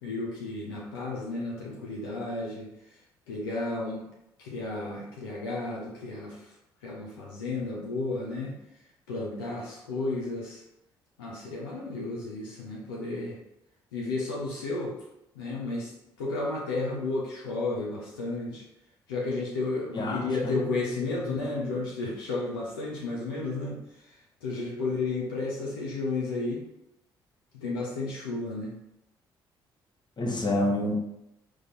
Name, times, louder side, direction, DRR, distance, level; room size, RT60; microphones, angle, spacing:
voice 1, 0.0-2.7 3.3-4.0 4.4-6.4 6.8-8.6 9.1-10.6 11.2-13.4 13.9-15.0 15.3-15.9 16.2-18.6 19.1-23.8 24.4-26.6 27.5-28.7, left 3 dB, 90° left, -4 dB, 0.9 m, -32 dB
voice 2, 19.9-20.5 21.3-21.7 30.2-31.0, left 1 dB, 40° left, 1 dB, 1.1 m, -29 dB
3.6 x 3.2 x 4.2 m, 0.82 s
hypercardioid pair, 45°, 12 cm